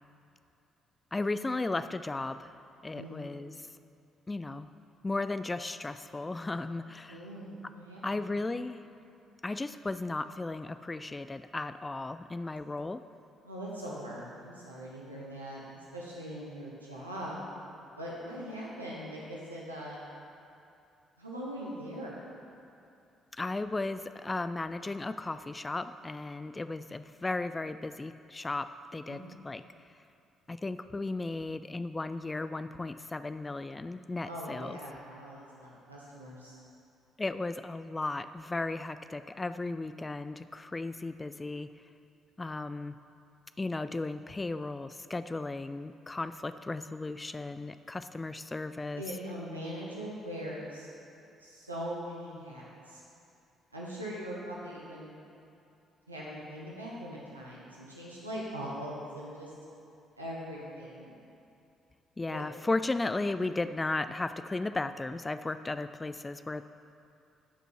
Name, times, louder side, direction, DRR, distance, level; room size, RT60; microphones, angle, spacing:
voice 1, 1.1-2.5 2.8-3.5 4.3-4.7 5.0-7.3 8.0-8.8 9.4-13.0 23.4-29.6 30.5-34.8 37.2-41.7 42.4-43.0 43.6-49.0 62.2-66.6, left 2 dB, 20° left, 12 dB, 0.3 m, -35 dB
voice 2, 2.9-3.3 7.1-8.2 13.4-17.4 18.0-20.1 21.2-22.2 29.1-29.3 34.2-36.5 49.0-50.9 51.4-53.0 53.7-55.1 56.1-59.5 60.2-61.2 62.3-62.4, equal, 90° right, -6 dB, 1.0 m, -41 dB
12.5 x 5.3 x 4.4 m, 2.6 s
figure-of-eight pair, 45°, 0 cm